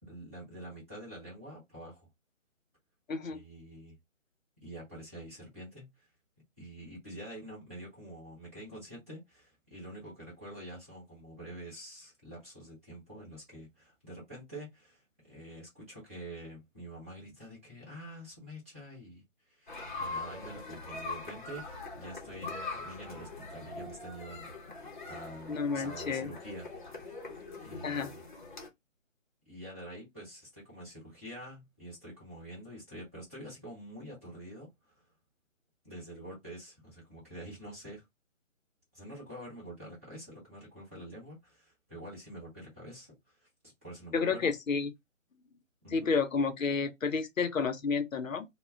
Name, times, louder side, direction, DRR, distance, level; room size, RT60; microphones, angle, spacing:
voice 1, 0.0-2.1 3.3-4.0 4.6-6.1 6.6-27.1 27.6-28.2 29.5-34.9 35.8-38.0 38.9-43.5 43.8-44.5 45.8-46.2, right 1 dB, 10° right, 0.8 m, -47 dB
voice 2, 3.1-3.4 25.5-26.3 27.8-28.1 44.1-44.9 45.9-48.5, left 5 dB, 85° left, 0.7 m, -30 dB
sound 1, 19.7-28.7, left 3 dB, 40° left, 0.7 m, -42 dB
2.1 x 2.1 x 3.5 m
figure-of-eight pair, 160°, 38 cm